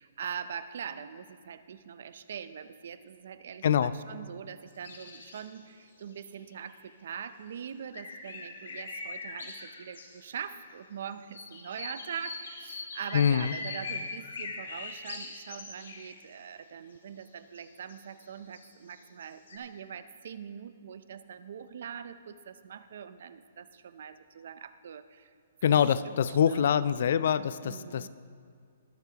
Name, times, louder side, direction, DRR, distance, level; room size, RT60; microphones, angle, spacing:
voice 1, 0.2-5.6 6.0-6.7 7.0-9.5 9.9-10.0 10.2-12.3 12.7-22.1 22.6-23.6 23.9-25.0 25.7-26.7 27.6-28.1, right 7 dB, 60° right, 13 dB, 0.5 m, -42 dB
sound 1, 4.7-5.6 5.9-6.0 6.2-6.9 7.9-10.3 11.3-16.1 17.2-17.3 17.5-19.6, left 4 dB, 85° left, 1.9 m, -41 dB
voice 2, 13.1-13.5 25.6-28.1, left 8 dB, 55° left, 16 dB, 0.3 m, -25 dB
21.5 x 8.1 x 2.9 m, 2.1 s
hypercardioid pair, 170°, 0 cm